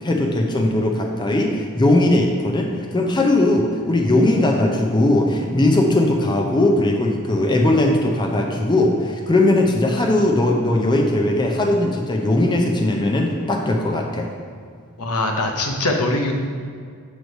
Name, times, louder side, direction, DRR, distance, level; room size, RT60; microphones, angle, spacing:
voice 1, 0.0-14.3, left 1 dB, 20° left, 1 dB, 0.5 m, -19 dB
voice 2, 15.0-16.4, left 2 dB, 75° left, 2 dB, 0.8 m, -22 dB
7.9 x 3.1 x 5.2 m, 2.1 s
head